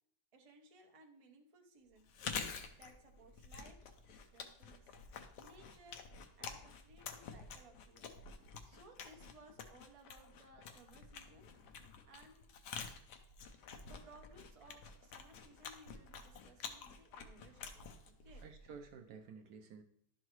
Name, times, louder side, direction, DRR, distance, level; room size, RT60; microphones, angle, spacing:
voice 1, 0.3-2.1 2.4-4.9 5.4-6.0 6.4-8.1 8.6-12.5 13.8-18.0 18.2-18.4, right 2 dB, 40° right, 2 dB, 0.4 m, -61 dB
Chewing mastication, 2.0-18.9, left 6 dB, 65° left, 1.2 m, -49 dB
voice 2, 18.4-19.8, right 5 dB, 70° right, 5 dB, 1.0 m, -53 dB
11.5 x 4.7 x 3.0 m, 0.67 s
omnidirectional pair, 2.1 m